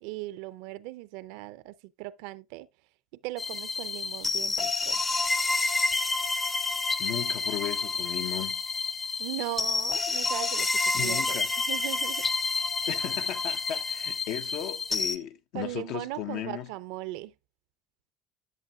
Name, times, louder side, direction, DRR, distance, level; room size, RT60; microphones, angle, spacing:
voice 1, 0.0-2.7 3.2-5.0 9.2-12.2 15.5-17.3, right 17 dB, 90° right, 0.5 m, -38 dB
sound 1, 3.4-15.2, left 4 dB, 20° left, 0.6 m, -29 dB
voice 2, 7.0-8.6 10.9-11.5 12.9-16.7, left 11 dB, 70° left, 0.8 m, -36 dB
10.5 x 7.4 x 2.3 m
cardioid pair, 120°, 0 cm